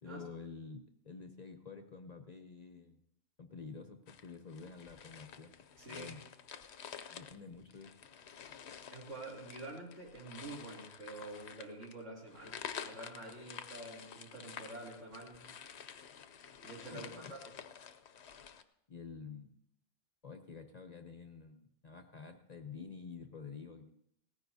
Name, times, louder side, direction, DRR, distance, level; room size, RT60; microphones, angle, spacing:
voice 1, 0.0-3.0 3.4-5.5 5.9-6.2 7.1-7.9 16.9-17.4 18.9-19.6 20.2-23.9, left 5 dB, 40° left, 6 dB, 0.7 m, -49 dB
sound 1, 4.1-18.6, left 8 dB, 70° left, 1.0 m, -50 dB
voice 2, 5.8-6.1 8.9-15.5 16.6-17.5, right 2 dB, 80° right, -3 dB, 3.3 m, -48 dB
18.0 x 14.5 x 2.7 m, 0.74 s
omnidirectional pair, 1.2 m